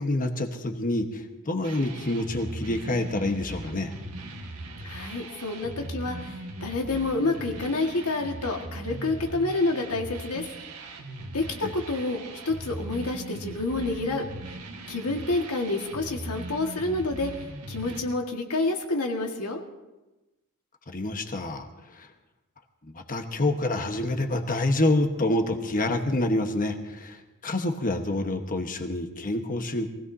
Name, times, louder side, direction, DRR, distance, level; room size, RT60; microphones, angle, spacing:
voice 1, 0.0-3.9 11.6-11.7 20.9-22.1 22.8-29.9, left 2 dB, 40° left, 5 dB, 1.2 m, -27 dB
sound 1, 1.6-18.0, right 1 dB, 90° right, 1.6 m, -39 dB
voice 2, 4.8-10.4 11.3-14.3 14.9-19.6, left 2 dB, 85° left, 2 dB, 1.8 m, -28 dB
23.0 x 16.5 x 2.8 m, 1.1 s
head